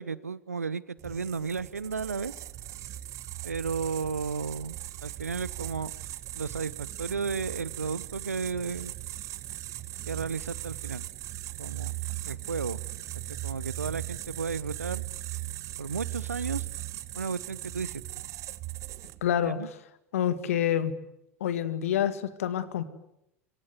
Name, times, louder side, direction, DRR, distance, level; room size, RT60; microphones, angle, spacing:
voice 1, 0.0-2.3 3.4-4.7 5.0-5.9 6.3-8.9 10.1-11.1 11.6-11.9 12.2-12.8 13.4-15.0 15.8-16.7 17.1-18.0 19.4-19.7, right 5 dB, 80° right, 20 dB, 1.0 m, -33 dB
sound 1, 1.0-19.3, right 16 dB, 40° right, 1.4 m, -38 dB
voice 2, 19.2-19.6 20.1-20.9 21.4-22.8, left 10 dB, 65° left, 13 dB, 2.1 m, -27 dB
26.0 x 24.0 x 9.5 m, 0.82 s
figure-of-eight pair, 85°, 8 cm